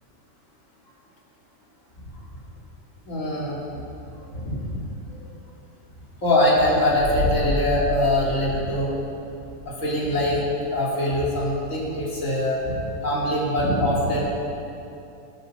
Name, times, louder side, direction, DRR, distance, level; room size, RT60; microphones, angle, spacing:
voice 1, 3.0-3.6 4.3-4.8 6.2-8.9 9.6-10.4 10.7-14.3, left 1 dB, 65° left, -5 dB, 3.4 m, -23 dB
sound 1, 7.0-9.7 10.0-10.1, left 1 dB, 85° right, 2.4 m, -30 dB
20.0 x 8.2 x 6.8 m, 2.7 s
omnidirectional pair, 1.5 m